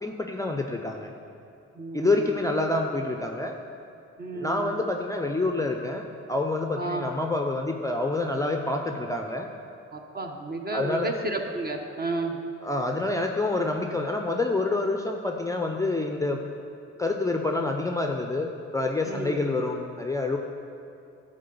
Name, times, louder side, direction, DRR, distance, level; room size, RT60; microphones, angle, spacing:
voice 1, 0.0-1.1 1.9-3.6 4.3-9.5 10.7-11.1 12.6-16.4 17.0-20.4, left 2 dB, 10° left, 2 dB, 0.5 m, -27 dB
voice 2, 1.7-2.4 4.2-4.8 6.8-7.0 9.9-12.4 19.0-19.4, right 2 dB, 30° right, 3 dB, 1.0 m, -32 dB
11.5 x 3.9 x 6.8 m, 2.6 s
cardioid pair, 90°, 30 cm